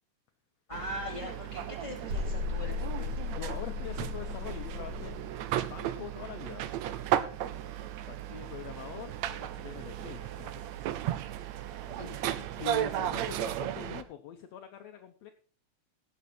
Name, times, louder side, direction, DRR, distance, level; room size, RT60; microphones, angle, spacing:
voice 1, 0.7-3.2 12.0-12.2, left 1 dB, 10° left, -2 dB, 4.0 m, -41 dB
sound 1, 0.7-14.0, right 11 dB, 75° right, 2.0 m, -35 dB
sound 2, 2.1-5.2, left 4 dB, 50° right, 3.1 m, -36 dB
voice 2, 3.3-6.7 8.1-11.1 12.6-15.3, left 9 dB, 70° left, 6 dB, 1.9 m, -44 dB
17.5 x 7.0 x 4.4 m, 0.43 s
omnidirectional pair, 3.3 m